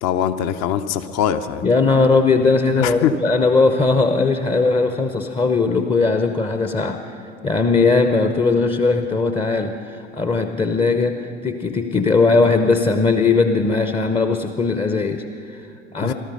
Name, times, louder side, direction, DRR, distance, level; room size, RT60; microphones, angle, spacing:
voice 1, 0.0-1.6 2.8-3.1 16.0-16.1, left 10 dB, 45° left, 11 dB, 0.8 m, -22 dB
voice 2, 1.6-16.1, left 4 dB, 15° left, 7 dB, 0.7 m, -19 dB
17.5 x 13.5 x 5.4 m, 2.3 s
figure-of-eight pair, 70°, 37 cm